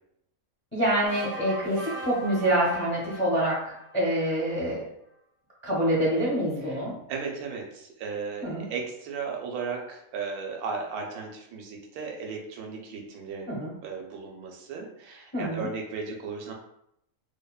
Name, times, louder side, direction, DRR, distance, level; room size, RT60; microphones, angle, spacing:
voice 1, 0.7-3.6 3.9-4.9 5.6-7.0 8.4-8.7 13.5-13.7 15.3-15.7, right 1 dB, 15° left, -7 dB, 0.4 m, -26 dB
sound 1, 1.0-4.5, right 1 dB, 60° right, 0.7 m, -39 dB
voice 2, 7.1-13.5 13.8-16.5, right 5 dB, 85° right, 1 dB, 1.1 m, -35 dB
2.7 x 2.1 x 2.2 m, 0.75 s
omnidirectional pair, 1.5 m